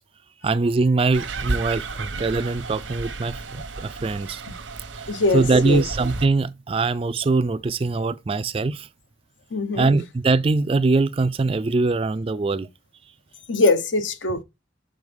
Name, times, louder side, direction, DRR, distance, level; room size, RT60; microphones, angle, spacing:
voice 1, 0.4-4.4 5.0-5.1 5.3-8.9 9.8-12.7, right 3 dB, 30° right, 0.3 m, -22 dB
sound 1, 1.1-6.3, right 3 dB, 80° right, 0.9 m, -32 dB
voice 2, 5.1-5.8 9.5-9.9 13.5-14.4, left 3 dB, 75° left, 0.9 m, -22 dB
6.5 x 3.8 x 5.2 m
head